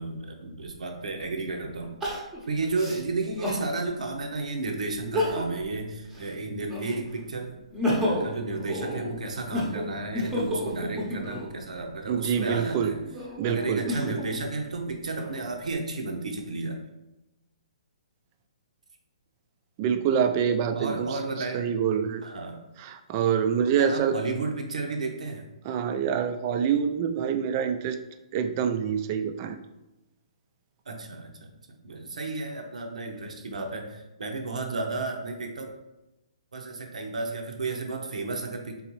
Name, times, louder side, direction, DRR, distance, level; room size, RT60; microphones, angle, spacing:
voice 1, 0.0-2.0 2.5-7.5 8.0-13.0 13.4-16.8 20.8-21.7 22.2-22.6 23.6-25.5 30.9-31.5 31.8-35.7 36.5-38.8, right 3 dB, 85° right, 3 dB, 0.8 m, -32 dB
Crying sobbing, 0.6-0.7 2.0-3.7 4.2-4.3 5.0-5.7 6.0-7.1 7.5-11.5 12.2-14.3 14.9-15.7, left 1 dB, 10° right, 0.8 m, -31 dB
voice 2, 12.1-12.9 13.4-14.2 19.8-21.1 21.5-22.3 22.8-24.1 25.7-28.0 28.3-29.6, right 8 dB, 30° right, 8 dB, 0.3 m, -26 dB
4.0 x 3.8 x 3.0 m, 0.95 s
hypercardioid pair, 160°, 4 cm